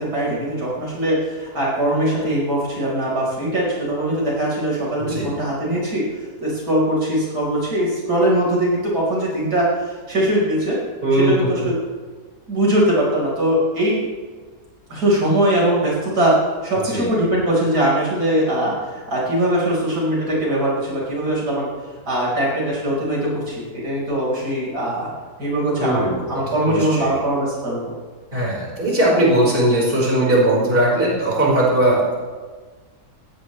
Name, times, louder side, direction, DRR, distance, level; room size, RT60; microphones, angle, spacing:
voice 1, 0.0-10.8 11.1-11.8 12.5-14.1 14.9-16.3 16.6-21.7 22.1-25.1 25.4-27.9, right 1 dB, 85° right, -4 dB, 5.5 m, -21 dB
voice 2, 11.0-11.5 16.8-17.1 25.8-26.3 26.7-27.1 28.3-32.1, right 1 dB, 35° right, -5 dB, 5.3 m, -19 dB
18.5 x 17.0 x 3.3 m, 1.4 s
omnidirectional pair, 1.7 m